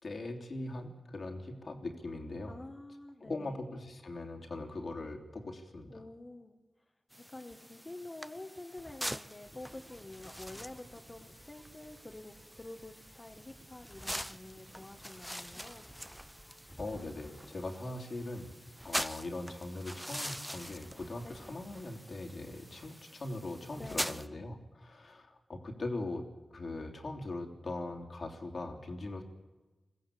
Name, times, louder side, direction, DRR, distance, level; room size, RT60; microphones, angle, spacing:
voice 1, 0.0-2.5 3.2-5.9 16.8-18.6 18.8-26.3 26.5-29.2, left 2 dB, 65° left, 3 dB, 3.2 m, -41 dB
voice 2, 2.5-3.6 5.9-6.6 7.2-15.9 21.2-21.3 23.7-24.4, left 2 dB, 35° left, 3 dB, 1.8 m, -48 dB
sound 1, 7.1-24.3, equal, ahead, 0.9 m, -44 dB
sound 2, 9.4-17.1, right 1 dB, 55° right, 4.6 m, -60 dB
21.5 x 15.0 x 8.7 m, 1.1 s
cardioid pair, 50°, 0 cm